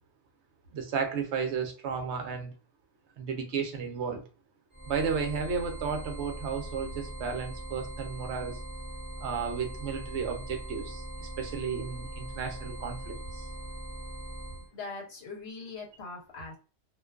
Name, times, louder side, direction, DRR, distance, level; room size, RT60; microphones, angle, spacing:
voice 1, 0.7-2.5 3.2-4.2 4.9-8.6 9.2-13.4, right 6 dB, 75° right, 0.9 m, -33 dB
sound 1, 4.7-14.7, right 1 dB, 10° right, 0.9 m, -40 dB
voice 2, 14.7-16.6, left 4 dB, 65° left, 1.0 m, -41 dB
2.5 x 2.3 x 2.2 m
omnidirectional pair, 1.2 m